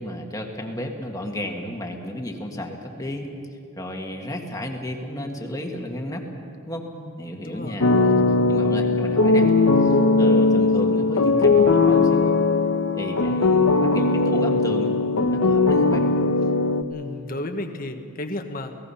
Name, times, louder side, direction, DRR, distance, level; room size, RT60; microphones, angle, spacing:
voice 1, 0.0-3.3 3.8-6.2 6.7-6.9 7.2-7.9 8.5-9.5 9.8-12.3 13.0-14.9 15.3-16.1, left 1 dB, 15° left, 2 dB, 1.8 m, -32 dB
voice 2, 7.4-7.8 16.9-18.8, left 1 dB, 40° left, 5 dB, 1.4 m, -33 dB
sound 1, 7.8-16.8, left 3 dB, 85° left, 1.1 m, -19 dB
30.0 x 18.0 x 5.8 m, 2.4 s
head